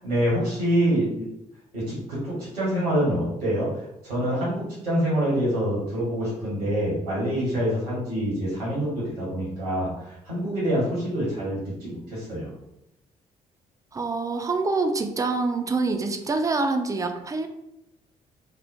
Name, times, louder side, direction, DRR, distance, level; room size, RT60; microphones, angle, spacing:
voice 1, 0.0-1.3 1.7-12.5, equal, 90° right, -8 dB, 1.1 m, -26 dB
voice 2, 13.9-17.5, right 3 dB, 20° right, 6 dB, 0.4 m, -26 dB
3.5 x 2.1 x 2.6 m, 0.85 s
figure-of-eight pair, 45°, 19 cm